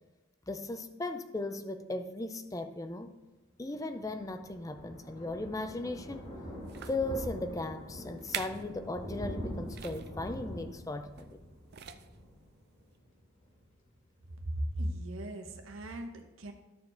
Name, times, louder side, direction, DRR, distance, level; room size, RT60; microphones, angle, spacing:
voice 1, 0.5-3.1 3.6-6.3 6.9-11.4, left 2 dB, 15° left, 0.5 m, -37 dB
Thunder, 3.7-13.1 13.4-13.7 14.0-14.1 14.2-14.3, left 1 dB, 40° left, 2.4 m, -44 dB
sound 1, 5.9-6.1 6.7-7.1 7.8-7.9 8.2-8.7 9.0-9.2 9.7-10.1 11.2-11.4 11.7-12.3 12.9-13.0, right 10 dB, 50° right, 0.4 m, -43 dB
voice 2, 14.4-16.5, right 1 dB, 85° right, 0.9 m, -37 dB
12.5 x 4.6 x 3.9 m
head